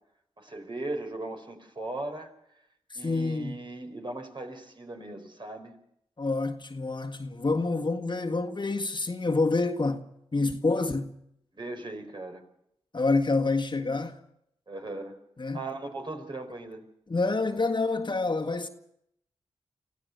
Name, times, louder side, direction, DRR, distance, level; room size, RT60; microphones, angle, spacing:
voice 1, 0.4-2.3 2.9-5.7 11.5-12.4 14.7-15.2 15.5-16.9, right 2 dB, 45° right, 4.8 m, -38 dB
voice 2, 2.9-3.6 6.2-10.0 10.3-11.1 12.9-14.1 15.4-15.6 17.1-18.7, left 3 dB, 40° left, 1.8 m, -27 dB
24.5 x 15.5 x 6.9 m
cardioid pair, 40°, 12 cm